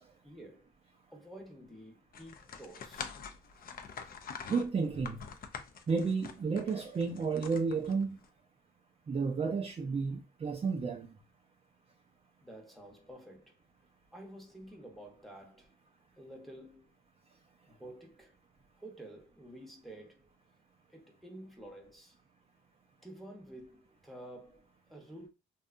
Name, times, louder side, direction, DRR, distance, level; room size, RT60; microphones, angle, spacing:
voice 1, 0.2-0.7 1.1-3.1 12.4-13.6 14.1-15.7 16.2-16.9 17.7-18.3 18.8-20.3 20.9-22.1 23.0-25.3, right 1 dB, ahead, 0.8 m, -50 dB
sound 1, 2.1-8.3, left 6 dB, 50° left, 0.5 m, -45 dB
voice 2, 4.5-5.2 5.9-8.2 9.1-11.1, right 5 dB, 30° right, 0.5 m, -32 dB
2.7 x 2.3 x 2.4 m
cardioid pair, 90°, 20 cm